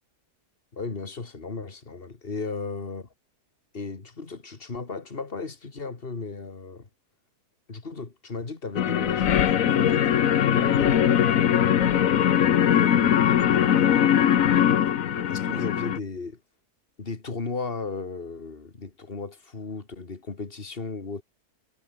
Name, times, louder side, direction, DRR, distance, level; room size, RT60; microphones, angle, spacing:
voice 1, 0.7-3.1 3.7-6.9 7.7-14.1 15.1-16.4 17.0-21.2, left 4 dB, 35° left, 2.4 m, -36 dB
sound 1, 8.8-16.0, left 9 dB, 60° left, 1.3 m, -21 dB
omnidirectional pair, 1.7 m